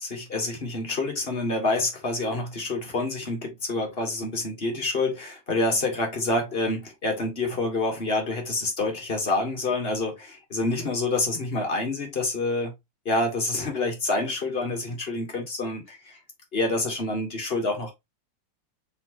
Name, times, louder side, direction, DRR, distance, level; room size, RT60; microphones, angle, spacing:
voice 1, 0.0-12.7 13.0-16.2 16.5-17.9, left 2 dB, 35° left, 1.4 m, -27 dB
4.2 x 4.1 x 2.9 m
omnidirectional pair, 2.1 m